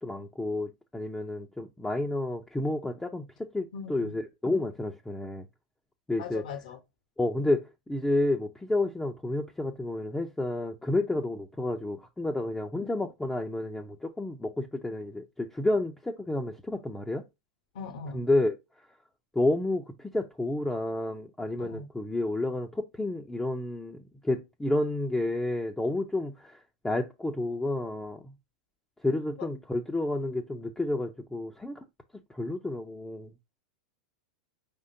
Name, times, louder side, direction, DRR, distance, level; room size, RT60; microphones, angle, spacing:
voice 1, 0.0-5.4 6.1-6.4 7.2-17.2 18.1-18.6 19.3-26.6 26.8-28.2 29.0-31.8 32.3-33.3, left 2 dB, 5° left, 0.6 m, -30 dB
voice 2, 3.7-4.2 6.2-6.8 17.7-18.2 21.6-21.9 29.4-29.5, left 5 dB, 65° left, 1.1 m, -40 dB
4.9 x 3.7 x 2.7 m
hypercardioid pair, 100°, 4 cm